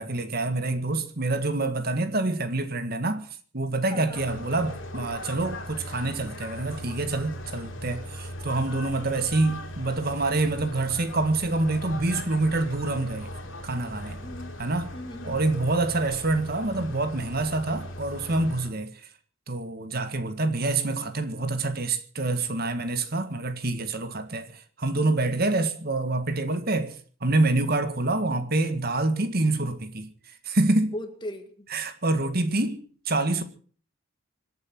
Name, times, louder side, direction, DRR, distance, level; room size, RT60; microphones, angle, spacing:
voice 1, 0.0-3.3 3.5-13.3 13.6-14.2 14.6-14.9 15.2-18.9 19.5-27.0 27.2-30.1 30.5-30.9 31.7-32.8 33.1-33.4, right 2 dB, 50° right, 1.8 m, -26 dB
voice 2, 3.9-4.4 14.2-14.6 14.9-15.4 30.9-31.6, left 1 dB, 25° left, 1.9 m, -38 dB
sound 1, 4.1-18.7, left 1 dB, 80° left, 3.8 m, -39 dB
26.0 x 8.8 x 6.0 m
head